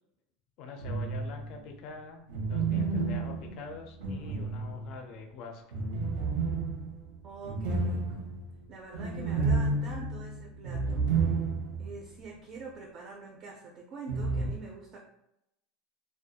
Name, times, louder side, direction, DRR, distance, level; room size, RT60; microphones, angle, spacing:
voice 1, 0.6-5.6, left 4 dB, 40° left, 4 dB, 0.4 m, -45 dB
sound 1, 0.8-1.5 2.3-5.1 5.7-11.9 12.2-12.3 14.1-14.5, right 4 dB, 85° right, 0.7 m, -31 dB
voice 2, 7.2-8.3 8.7-11.0 11.8-15.0, right 3 dB, 30° right, 0 dB, 0.3 m, -45 dB
2.3 x 2.1 x 2.7 m, 0.83 s
supercardioid pair, 175°, 0 cm